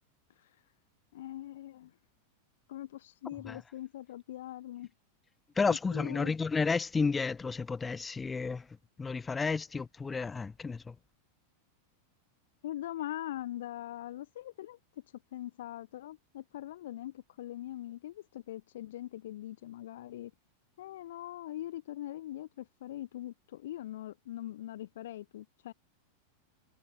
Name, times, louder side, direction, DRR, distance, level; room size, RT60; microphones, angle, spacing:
voice 1, 1.1-1.9 2.7-4.9 5.7-6.3 12.6-15.0 15.3-20.3 20.8-25.7, left 13 dB, 55° left, 0.4 m, -42 dB
voice 2, 5.6-8.7 9.0-10.9, left 4 dB, 15° left, 0.6 m, -31 dB
figure-of-eight pair, 90°, 0 cm